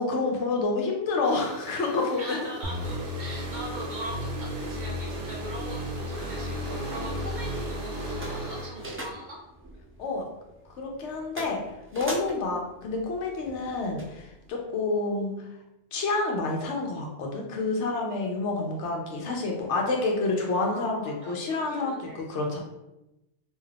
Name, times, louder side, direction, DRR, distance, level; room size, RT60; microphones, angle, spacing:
voice 1, 0.0-2.4 6.2-6.3 10.0-10.2 10.8-11.6 11.9-15.5 15.9-22.6, left 3 dB, 85° left, 1 dB, 0.9 m, -28 dB
sound 1, 1.2-8.7, equal, 20° left, 0.9 m, -42 dB
voice 2, 2.1-9.4 20.5-22.2, right 1 dB, 50° right, -3 dB, 0.7 m, -41 dB
sound 2, 2.6-9.1, equal, 90° right, 0.9 m, -34 dB
sound 3, 6.5-14.5, equal, 20° right, 0.3 m, -44 dB
2.5 x 2.4 x 3.3 m, 0.93 s
omnidirectional pair, 1.2 m